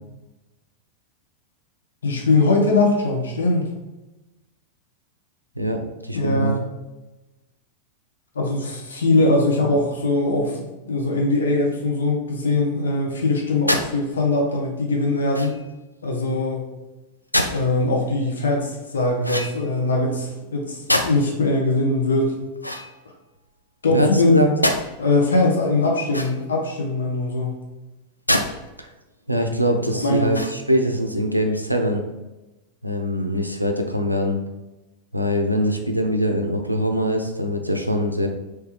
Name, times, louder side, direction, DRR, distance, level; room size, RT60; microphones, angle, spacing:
voice 1, 2.0-3.7 6.1-6.7 8.3-15.5 16.0-16.7 17.5-22.3 23.8-24.4 25.0-27.6 29.8-30.4, left 2 dB, 70° left, 0 dB, 0.7 m, -21 dB
voice 2, 5.6-6.5 23.9-24.5 28.8-28.9 29.3-32.0 32.8-34.4 35.1-38.3, equal, 90° right, 4 dB, 0.4 m, -22 dB
sound 1, 13.7-13.9 15.3-15.7 17.3-17.6 19.2-19.8 20.9-21.4 22.6-23.4 24.6-24.8 26.1-26.6 28.3-28.5 29.0-29.1 30.2-30.8, left 1 dB, 85° left, 0.3 m, -25 dB
3.3 x 3.2 x 3.0 m, 1.1 s
figure-of-eight pair, 90°, 0 cm